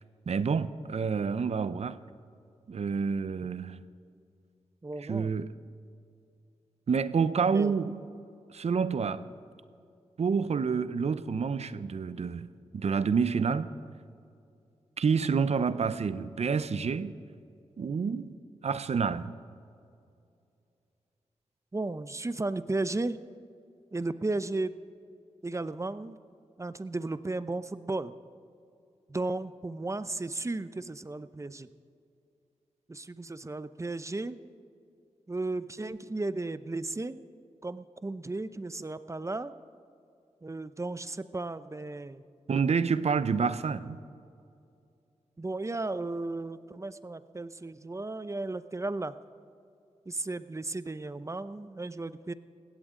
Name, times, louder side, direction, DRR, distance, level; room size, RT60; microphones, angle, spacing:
voice 1, 0.3-2.0 2.7-3.8 5.0-5.5 6.9-7.9 8.5-9.3 10.2-13.7 15.0-17.1 17.8-18.3 18.6-19.3 42.5-44.0, right 5 dB, 60° right, 0.7 m, -28 dB
voice 2, 4.8-5.3 7.5-7.7 21.7-23.2 23.9-24.8 25.4-26.2 26.6-28.1 29.1-31.7 32.9-34.4 35.3-37.2 37.6-39.5 40.4-42.2 45.4-49.1 50.1-52.3, right 2 dB, 25° right, 0.7 m, -34 dB
20.5 x 16.5 x 3.8 m
cardioid pair, 55°, 12 cm